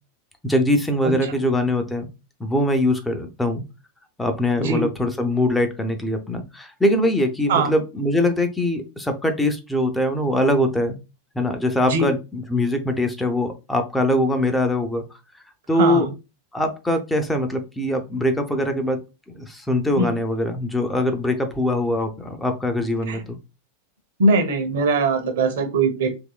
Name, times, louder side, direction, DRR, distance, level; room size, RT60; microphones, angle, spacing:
voice 1, 0.4-2.1 2.4-3.6 4.2-11.0 11.3-15.0 15.7-16.1 16.5-19.0 19.3-23.4, left 1 dB, 5° left, 6 dB, 0.6 m, -22 dB
voice 2, 15.7-16.1 20.0-20.1 23.1-23.2 24.2-26.1, right 3 dB, 55° right, 6 dB, 0.8 m, -21 dB
3.5 x 3.0 x 2.2 m, 0.27 s
figure-of-eight pair, 90°, 0 cm